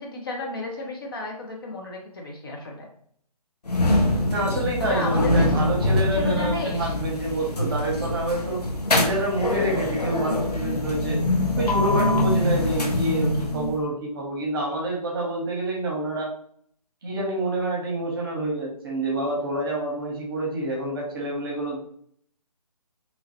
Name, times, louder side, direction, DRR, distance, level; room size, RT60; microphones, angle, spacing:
voice 1, 0.0-2.9 4.8-5.5 6.1-6.9, left 2 dB, 35° left, 0 dB, 0.5 m, -32 dB
sound 1, 3.7-13.8, left 1 dB, 80° left, 0.7 m, -24 dB
voice 2, 4.3-8.6 8.9-11.2 11.6-16.3 17.0-21.8, right 1 dB, 35° right, -1 dB, 0.8 m, -27 dB
2.9 x 2.3 x 2.8 m, 0.63 s
figure-of-eight pair, 145°, 20 cm